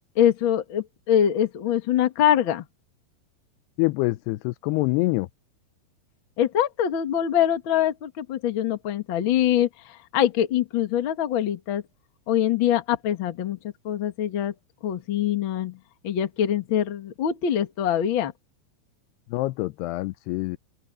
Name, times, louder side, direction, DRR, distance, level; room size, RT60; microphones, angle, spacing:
voice 1, 0.1-2.6 6.4-11.8 12.3-13.6 13.8-14.5 14.8-15.8 16.0-18.3, left 10 dB, 50° left, 1.4 m, -24 dB
voice 2, 3.8-5.3 19.3-20.6, left 21 dB, 80° left, 2.6 m, -25 dB
open air
omnidirectional pair, 4.8 m